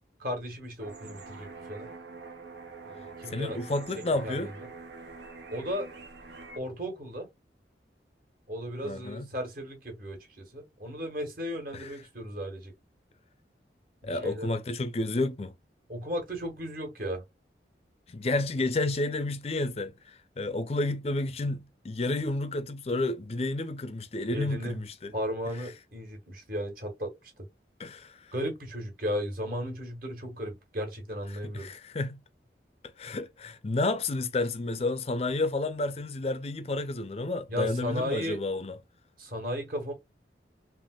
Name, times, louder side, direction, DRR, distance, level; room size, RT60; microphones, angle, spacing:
voice 1, 0.2-1.9 2.8-3.6 4.2-4.7 5.5-5.9 6.5-7.3 8.5-12.7 14.0-14.5 15.9-17.2 24.3-24.8 25.1-27.1 28.3-31.7 37.5-38.4 39.2-39.9, equal, 55° right, 1.5 m, -35 dB
sound 1, 0.8-6.6, right 4 dB, 85° right, 0.9 m, -45 dB
voice 2, 3.3-4.5 8.8-9.3 11.7-12.0 14.0-15.5 18.1-25.1 27.8-28.3 31.4-32.2 33.0-38.8, left 2 dB, 35° left, 0.5 m, -31 dB
3.4 x 2.9 x 2.3 m
head